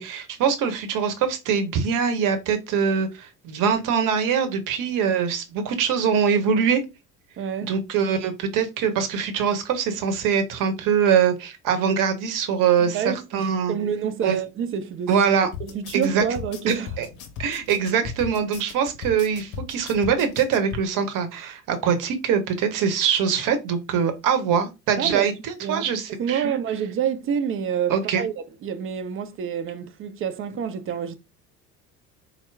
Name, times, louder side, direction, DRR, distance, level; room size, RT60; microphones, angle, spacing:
voice 1, 0.0-6.8 7.6-13.0 13.3-13.7 14.2-14.4 15.1-15.5 15.9-16.2 16.7-17.1 17.4-26.6 27.9-28.2, right 7 dB, 50° right, 1.0 m, -23 dB
voice 2, 7.4-7.7 12.8-15.1 15.6-16.9 25.0-25.3 25.6-25.9 26.2-31.2, right 7 dB, 30° right, 0.6 m, -28 dB
sound 1, 15.5-20.8, left 7 dB, 55° left, 0.8 m, -37 dB
4.3 x 2.1 x 3.3 m
figure-of-eight pair, 60°, 42 cm